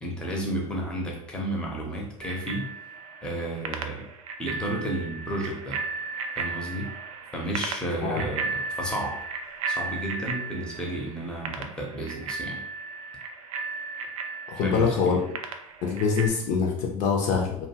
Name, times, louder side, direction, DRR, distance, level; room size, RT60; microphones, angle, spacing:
voice 1, 0.0-2.7 3.2-4.1 4.4-5.8 6.4-6.9 7.3-9.2 9.7-12.7 14.6-15.2, right 1 dB, 5° left, -1 dB, 0.7 m, -32 dB
Bicycle bell, 2.2-16.3, right 4 dB, 70° right, 0.4 m, -35 dB
voice 2, 14.5-15.2 15.8-17.7, left 5 dB, 45° left, 0 dB, 0.5 m, -24 dB
2.6 x 2.3 x 2.8 m, 0.73 s
hypercardioid pair, 85°, 18 cm